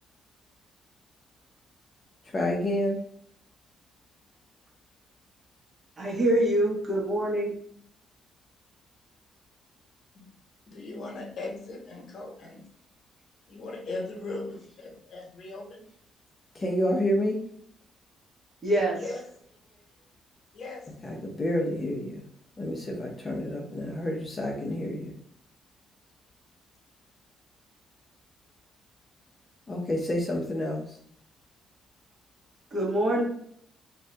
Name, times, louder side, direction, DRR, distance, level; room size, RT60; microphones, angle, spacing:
voice 1, 2.3-3.0 16.6-17.4 21.0-22.2 22.6-25.1 29.7-30.8, left 1 dB, 30° left, -1 dB, 0.7 m, -29 dB
voice 2, 6.0-7.5 18.6-19.0 32.7-33.2, right 1 dB, 35° right, -3 dB, 1.2 m, -25 dB
voice 3, 10.7-12.6 13.5-15.8 19.0-19.2 20.5-20.8, left 2 dB, 55° left, 0 dB, 1.1 m, -38 dB
2.6 x 2.5 x 3.3 m, 0.64 s
cardioid pair, 90°, 0 cm